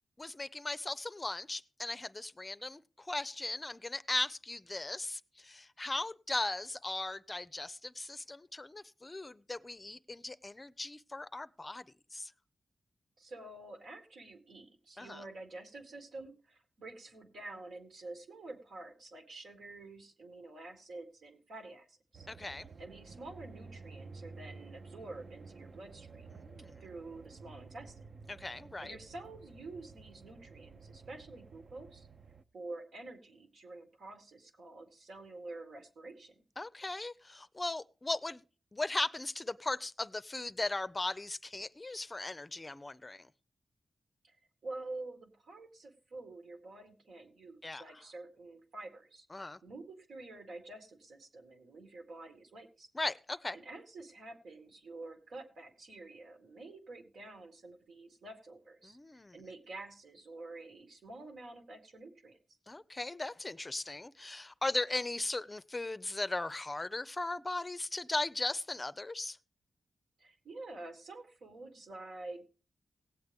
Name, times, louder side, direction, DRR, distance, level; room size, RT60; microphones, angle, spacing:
voice 1, 0.2-11.8 12.1-12.3 15.0-15.2 22.3-22.7 26.4-26.8 28.3-29.0 36.6-38.4 38.7-43.2 47.6-47.8 49.3-49.6 52.9-53.6 58.8-59.4 62.7-69.4, left 2 dB, 25° left, 0.5 m, -38 dB
voice 2, 13.2-22.3 22.8-26.4 26.8-28.1 28.8-32.1 32.5-36.4 44.2-44.4 44.6-52.9 53.5-59.0 59.3-62.4 70.2-72.5, right 2 dB, 85° right, 1.8 m, -48 dB
sound 1, 22.1-32.4, right 4 dB, 60° right, 0.6 m, -52 dB
18.0 x 8.1 x 3.5 m
cardioid pair, 80°, 0 cm